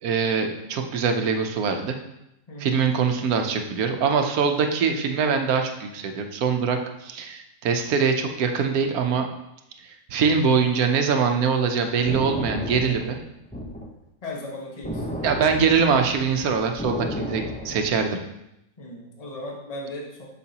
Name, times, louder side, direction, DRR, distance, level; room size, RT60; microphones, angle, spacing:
voice 1, 0.0-2.0 2.6-9.3 9.8-13.2 15.2-18.2, right 5 dB, 90° right, 5 dB, 1.2 m, -23 dB
voice 2, 2.5-2.8 14.2-15.0 18.8-20.3, left 1 dB, 30° left, -2 dB, 1.2 m, -36 dB
sound 1, 11.8-13.9 14.8-18.1, equal, 10° left, 0.5 m, -32 dB
8.3 x 6.3 x 2.9 m, 0.85 s
omnidirectional pair, 1.5 m